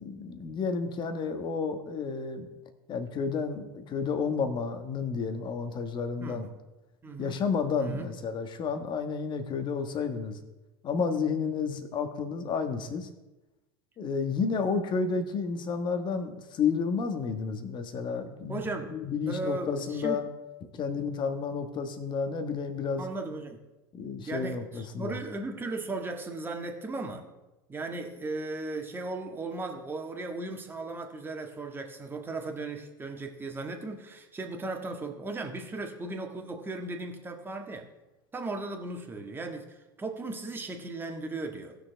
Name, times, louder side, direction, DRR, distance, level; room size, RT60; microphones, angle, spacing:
voice 1, 0.0-2.5 2.9-6.5 7.2-10.4 10.8-13.1 14.0-20.3 20.8-23.0 24.0-25.2, left 5 dB, 35° left, 7 dB, 1.4 m, -31 dB
voice 2, 6.2-6.5 7.0-7.4 7.8-8.1 18.5-19.0 19.3-20.2 23.0-23.6 24.2-27.3 27.7-37.9 38.3-41.8, right 2 dB, 15° right, 3 dB, 1.7 m, -36 dB
17.0 x 6.5 x 3.4 m, 1.1 s
hypercardioid pair, 100°, 13 cm